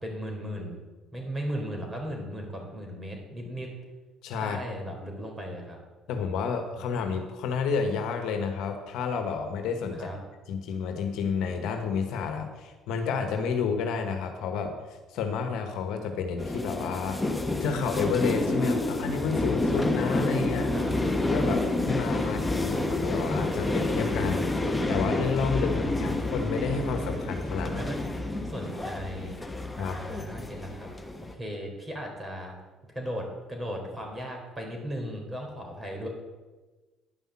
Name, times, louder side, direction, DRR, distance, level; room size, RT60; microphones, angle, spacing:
voice 1, 0.0-0.8 1.1-3.7 4.4-5.8 9.9-10.2 20.7-20.9 22.2-22.7 25.7-26.2 27.6-28.0 28.4-30.9 31.3-32.6 32.8-36.1, equal, 15° right, 1 dB, 3.8 m, -37 dB
voice 2, 4.2-4.6 6.1-10.1 10.5-14.8 15.1-17.2 17.6-20.7 21.2-24.5 24.9-27.8 29.8-30.1, left 5 dB, 70° left, 6 dB, 1.2 m, -30 dB
sound 1, 16.4-31.3, left 2 dB, 15° left, 1.2 m, -29 dB
10.5 x 5.6 x 7.3 m, 1.2 s
supercardioid pair, 70°, 0 cm